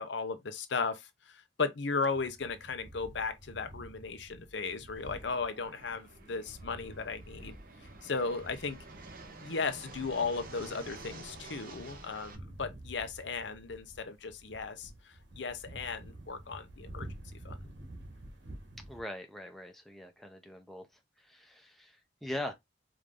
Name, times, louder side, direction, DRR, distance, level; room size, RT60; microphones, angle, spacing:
voice 1, 0.0-7.6 8.0-8.8 9.4-17.1 17.4-17.7, left 4 dB, 70° left, 0.7 m, -36 dB
sound 1, 2.1-19.0, right 1 dB, 85° right, 1.5 m, -50 dB
Fixed-wing aircraft airplane, 5.0-12.3, right 3 dB, 50° right, 0.9 m, -50 dB
voice 2, 18.9-20.9 21.2-22.5, left 1 dB, ahead, 0.7 m, -42 dB
4.9 x 2.6 x 3.7 m
head